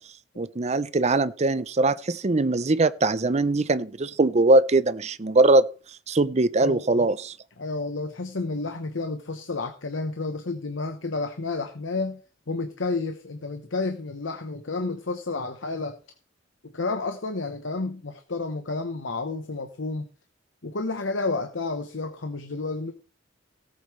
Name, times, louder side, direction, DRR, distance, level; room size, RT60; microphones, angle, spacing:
voice 1, 0.4-5.6 6.1-7.4, right 2 dB, 35° right, 0.6 m, -21 dB
voice 2, 6.6-7.1 7.6-12.2 12.5-16.0 16.6-20.1 20.6-22.9, left 3 dB, 75° left, 1.0 m, -31 dB
17.5 x 8.2 x 3.2 m
head